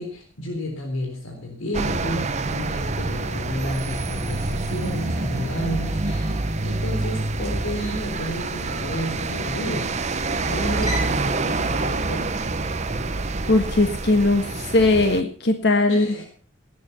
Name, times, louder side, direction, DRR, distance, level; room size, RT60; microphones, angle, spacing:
voice 1, 0.0-9.9 10.4-12.3 15.9-16.2, equal, 80° left, 2 dB, 3.9 m, -31 dB
sound 1, 1.7-15.2, right 2 dB, 35° right, 0.9 m, -27 dB
sound 2, 3.6-11.2, right 1 dB, 15° right, 4.7 m, -40 dB
voice 2, 13.5-16.1, left 2 dB, 55° left, 6 dB, 1.5 m, -19 dB
18.5 x 9.4 x 5.7 m, 0.42 s
head